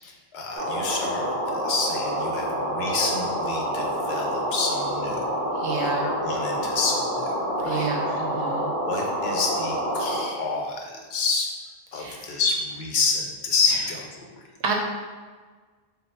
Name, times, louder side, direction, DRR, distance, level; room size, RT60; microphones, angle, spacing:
voice 1, 0.0-5.3 5.8-7.3 7.6-8.2 8.8-11.5 11.9-14.4, left 4 dB, 70° left, 0 dB, 0.9 m, -29 dB
sound 1, 0.5-10.3, equal, 50° right, 0.9 m, -27 dB
voice 2, 5.6-6.0 7.6-8.7 11.9-12.2 14.6-14.7, right 5 dB, 85° right, 0 dB, 0.9 m, -29 dB
3.9 x 2.0 x 4.2 m, 1.4 s
omnidirectional pair, 1.1 m